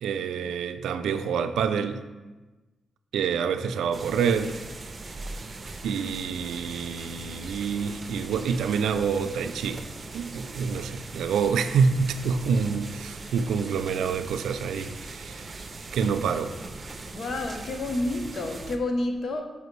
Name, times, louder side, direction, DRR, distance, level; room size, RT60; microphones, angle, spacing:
voice 1, 0.0-2.0 3.1-4.5 5.8-9.8 10.1-15.5 15.9-16.5, right 6 dB, 85° right, 10 dB, 0.4 m, -27 dB
sound 1, 3.9-18.8, right 3 dB, 45° right, 0.7 m, -40 dB
voice 2, 17.0-19.4, left 2 dB, 60° left, 5 dB, 0.9 m, -29 dB
7.9 x 4.8 x 3.2 m, 1.2 s
supercardioid pair, 60°, 0 cm